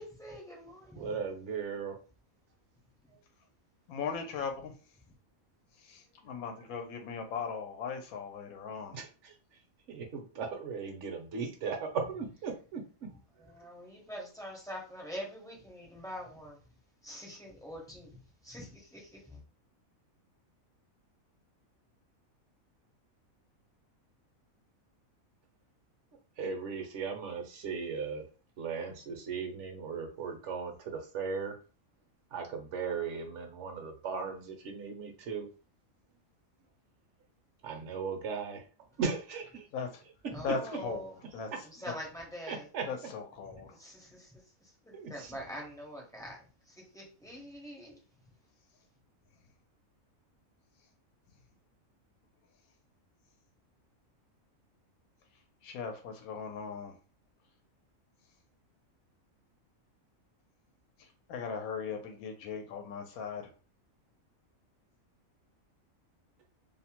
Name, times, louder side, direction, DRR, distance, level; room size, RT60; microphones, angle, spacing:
voice 1, 0.0-1.2 13.5-16.6 17.0-18.2 18.4-19.4 40.3-41.1 41.6-42.7 43.7-46.4 46.6-48.0, equal, 5° left, 0.4 m, -44 dB
voice 2, 0.9-2.0 3.1-3.2 6.2-6.3 8.9-13.5 26.4-28.3 28.6-31.6 32.3-35.5 37.6-38.7 39.0-39.7 40.2-40.6 41.5-41.6 42.5-42.9 44.9-45.4, right 5 dB, 65° right, 0.9 m, -37 dB
voice 3, 3.9-4.7 5.7-9.0 39.7-39.9 40.4-41.5 41.9-42.0 42.9-43.8 55.6-56.9 61.0-63.5, left 5 dB, 90° left, 1.0 m, -38 dB
2.6 x 2.0 x 2.8 m
omnidirectional pair, 1.4 m